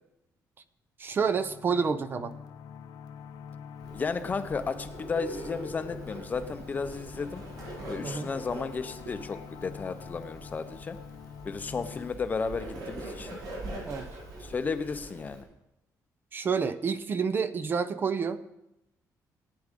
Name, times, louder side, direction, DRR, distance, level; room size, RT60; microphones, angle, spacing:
voice 1, 1.0-2.3 8.0-8.3 13.8-14.1 16.3-18.4, right 5 dB, 30° right, 11 dB, 0.6 m, -29 dB
sound 1, 1.2-12.1, left 7 dB, 75° left, 0.8 m, -45 dB
Bird, 3.8-15.4, right 2 dB, 85° right, 6.0 m, -43 dB
voice 2, 3.9-7.4 7.9-11.0 11.4-13.3 14.4-15.4, left 4 dB, 25° left, 10 dB, 0.7 m, -33 dB
18.5 x 9.5 x 3.7 m, 0.89 s
cardioid pair, 170°, 7 cm